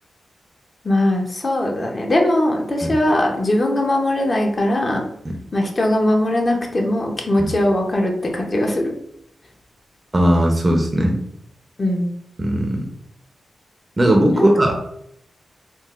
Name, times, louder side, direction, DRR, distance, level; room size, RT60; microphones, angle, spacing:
voice 1, 0.8-5.0 5.5-8.9 11.8-12.1 14.3-14.5, left 1 dB, 45° left, 1 dB, 0.6 m, -20 dB
voice 2, 10.1-11.2 12.4-12.8 14.0-14.8, right 1 dB, 35° right, 2 dB, 0.6 m, -17 dB
3.7 x 2.3 x 2.4 m, 0.74 s
cardioid pair, 50°, 0 cm